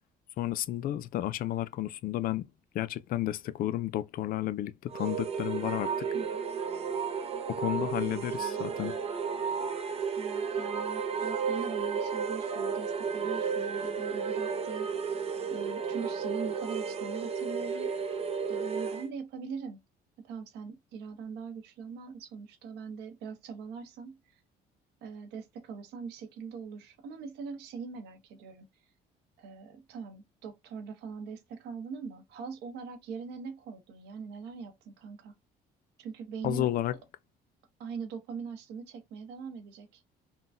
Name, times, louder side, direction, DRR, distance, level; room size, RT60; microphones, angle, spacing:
voice 1, 0.4-2.4 2.7-6.1 7.6-9.0 36.4-36.9, left 13 dB, 60° left, 0.4 m, -32 dB
sound 1, 4.9-19.1, right 6 dB, 35° right, 0.6 m, -33 dB
voice 2, 6.1-6.4 7.7-8.7 10.1-14.9 15.5-17.9 18.5-19.8 20.2-24.4 25.0-28.7 29.4-35.3 36.0-36.7 37.8-40.0, right 5 dB, 85° right, 0.9 m, -42 dB
3.7 x 2.2 x 2.5 m
cardioid pair, 110°, 17 cm